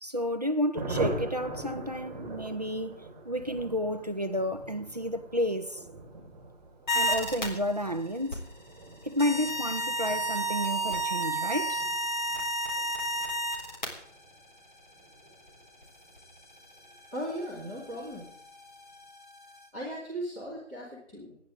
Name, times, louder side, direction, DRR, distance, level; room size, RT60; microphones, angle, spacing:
voice 1, 0.0-5.8 6.9-8.5 9.0-11.8, equal, 35° right, 0.7 m, -31 dB
Thunder, 0.7-16.9 17.1-17.2 17.5-17.7 17.9-18.3, right 2 dB, 10° right, 4.3 m, -42 dB
sound 1, 6.9-7.5 8.2-8.5 9.2-13.8 15.5-15.6 15.8-15.9 16.2-19.6, right 1 dB, 40° left, 4.1 m, -31 dB
voice 2, 17.1-18.3 19.7-21.4, equal, 5° left, 2.6 m, -37 dB
27.0 x 10.5 x 3.7 m
figure-of-eight pair, 160°, 37 cm